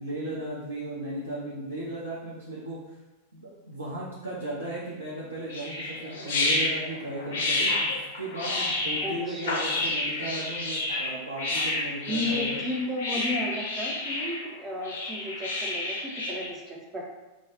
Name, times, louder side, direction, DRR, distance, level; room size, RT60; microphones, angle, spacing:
voice 1, 0.0-3.0 3.3-12.6, right 1 dB, 80° right, -8 dB, 0.5 m, -36 dB
sound 1, 5.5-16.5, left 2 dB, 60° left, 0.5 m, -29 dB
voice 2, 9.0-9.6 12.1-17.0, left 1 dB, 20° right, -1 dB, 0.5 m, -33 dB
2.2 x 2.0 x 2.9 m, 1.1 s
figure-of-eight pair, 90°, 0 cm